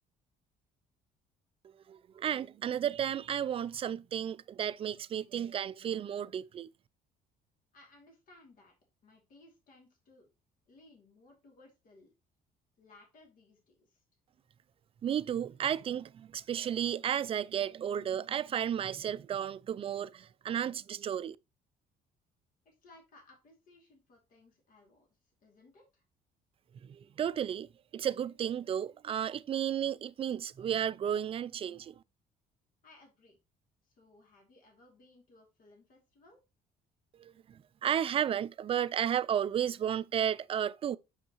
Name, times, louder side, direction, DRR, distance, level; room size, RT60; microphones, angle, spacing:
voice 1, 1.6-6.7 15.0-21.4 26.8-27.7 27.9-32.0 37.2-41.0, right 9 dB, 35° right, 0.3 m, -33 dB
voice 2, 7.7-8.7 9.0-10.3 10.7-12.1 12.8-14.0 22.6-26.0 32.8-33.4 33.8-36.4, left 2 dB, 55° left, 2.6 m, -61 dB
6.3 x 5.7 x 3.0 m
cardioid pair, 110°, 17 cm